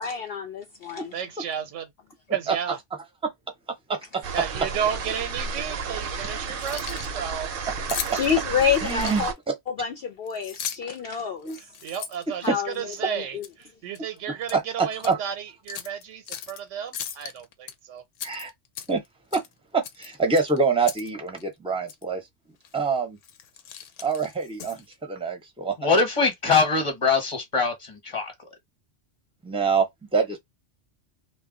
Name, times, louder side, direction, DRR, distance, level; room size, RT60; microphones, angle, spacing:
voice 1, 0.0-1.1 8.1-9.3 9.8-11.5 12.4-12.7 13.1-13.4, left 7 dB, 60° left, 0.7 m, -27 dB
voice 2, 1.1-1.9 2.3-2.8 4.3-7.8 11.8-18.0, right 8 dB, 85° right, 0.9 m, -33 dB
voice 3, 3.9-4.2 8.8-9.5 11.4-11.6 12.5-12.6 14.5-15.2 18.2-18.5 18.9-19.0 19.3-19.4 19.7-22.2 22.7-23.2 24.0-25.9 29.4-29.9 30.1-30.4, right 4 dB, 5° right, 0.5 m, -25 dB
sound 1, 4.2-9.3, right 5 dB, 60° right, 0.7 m, -32 dB
Keys jangling, 6.5-7.2 7.9-9.5 10.3-11.0 11.4-13.0 13.4-13.6 14.0-14.6 15.0-15.1 15.7-16.6 16.9-17.7 18.2-19.1 19.3-19.5 19.8-21.1 21.4-21.5 21.9-22.0 22.6-22.9 23.2-25.0, left 9 dB, 85° left, 0.9 m, -37 dB
voice 4, 25.8-28.3, left 4 dB, 30° left, 1.0 m, -22 dB
2.3 x 2.1 x 3.7 m
omnidirectional pair, 1.2 m